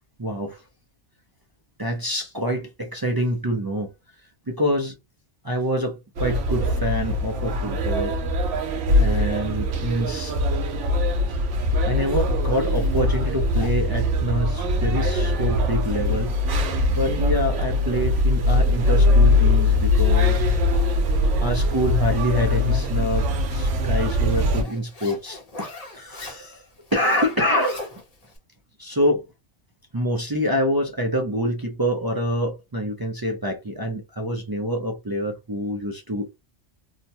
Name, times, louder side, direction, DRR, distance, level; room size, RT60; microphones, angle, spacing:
voice 1, 0.2-0.6 1.8-3.9 4.5-4.9 5.4-8.1 8.9-10.4 11.8-20.6 21.4-27.9 28.8-29.2 29.9-36.3, equal, 35° right, 0.3 m, -26 dB
sound 1, 6.2-24.6, left 2 dB, 85° right, 1.0 m, -21 dB
Zipper (clothing), 12.2-28.4, left 3 dB, 35° left, 0.8 m, -43 dB
2.9 x 2.1 x 2.7 m
omnidirectional pair, 1.2 m